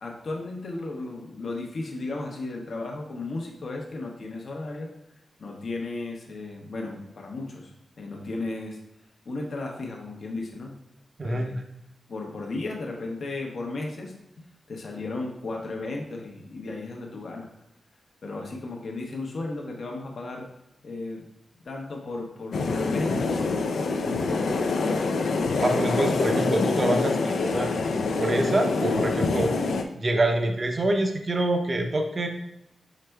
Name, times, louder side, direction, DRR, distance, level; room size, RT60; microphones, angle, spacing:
voice 1, 0.0-4.9 5.4-8.8 9.3-10.8 11.2-11.6 12.1-17.5 18.2-20.5 20.8-21.2 21.6-23.7 24.0-24.8, left 2 dB, 55° left, 0 dB, 0.7 m, -35 dB
sound 1, 22.5-29.8, left 3 dB, 85° left, 0.4 m, -25 dB
voice 2, 25.6-29.5 29.9-32.3, right 1 dB, 35° right, 4 dB, 0.5 m, -26 dB
4.9 x 4.3 x 2.2 m, 0.85 s
wide cardioid pair, 130°, 0 cm